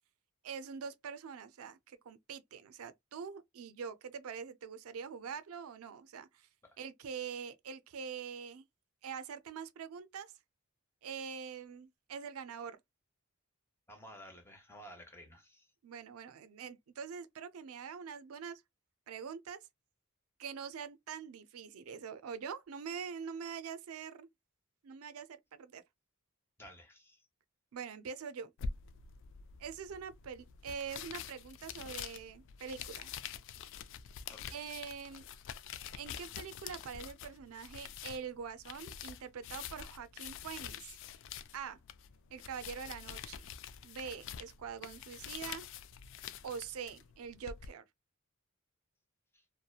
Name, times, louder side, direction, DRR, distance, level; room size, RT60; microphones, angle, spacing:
voice 1, 0.4-6.5 6.8-8.6 9.0-10.3 11.0-12.8 15.8-18.6 19.1-19.6 20.4-24.3 24.8-25.8 27.7-28.5 29.6-33.1 34.5-35.3 36.0-40.9 41.5-41.8 42.3-43.4 43.8-45.6 46.4-47.8, right 6 dB, 85° right, 0.4 m, -44 dB
voice 2, 13.9-15.7 26.6-27.2 34.3-34.4 49.3-49.4, equal, 10° left, 0.8 m, -53 dB
sound 1, 28.6-47.7, left 7 dB, 60° left, 0.3 m, -46 dB
2.8 x 2.1 x 2.2 m
head